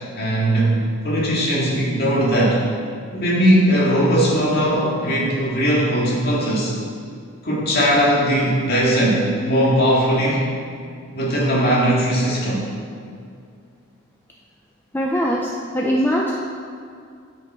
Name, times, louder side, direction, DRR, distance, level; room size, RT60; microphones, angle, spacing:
voice 1, 0.2-2.6 3.1-6.7 7.4-10.5 11.1-12.7, equal, 45° left, -5 dB, 2.0 m, -19 dB
voice 2, 14.9-16.3, equal, 10° left, -2 dB, 0.5 m, -21 dB
9.7 x 5.3 x 4.4 m, 2.3 s
head